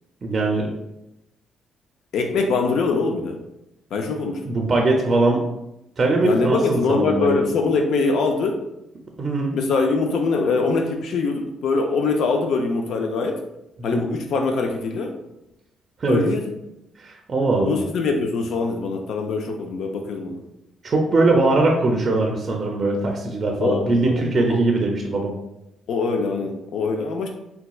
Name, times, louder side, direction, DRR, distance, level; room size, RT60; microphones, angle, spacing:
voice 1, 0.2-0.7 4.4-5.4 6.0-7.4 9.2-9.5 13.9-14.1 16.0-16.2 17.0-17.7 20.8-25.3, right 2 dB, 40° right, 1 dB, 0.4 m, -21 dB
voice 2, 2.1-3.4 3.9-4.4 6.2-8.6 9.5-13.4 13.8-15.1 16.1-16.5 17.6-20.4 23.6-24.2 24.5-24.6 25.9-27.3, left 4 dB, 75° left, 3 dB, 0.4 m, -23 dB
4.0 x 2.2 x 2.3 m, 0.88 s
cardioid pair, 90°, 0 cm